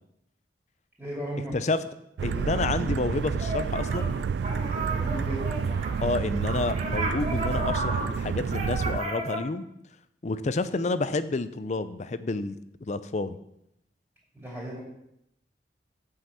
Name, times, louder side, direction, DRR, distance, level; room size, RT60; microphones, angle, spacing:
voice 1, 1.0-1.5 4.7-5.6 14.3-14.8, right 1 dB, 10° right, -5 dB, 2.8 m, -36 dB
voice 2, 1.5-1.8 2.2-4.1 6.0-9.7 10.2-12.6 12.9-13.4, left 3 dB, 40° left, 13 dB, 0.5 m, -29 dB
sound 1, 2.2-9.0, right 6 dB, 70° right, 0.3 m, -29 dB
sound 2, 3.4-4.2 4.4-9.4, right 2 dB, 40° right, 1.5 m, -33 dB
8.2 x 5.7 x 7.0 m, 0.79 s
head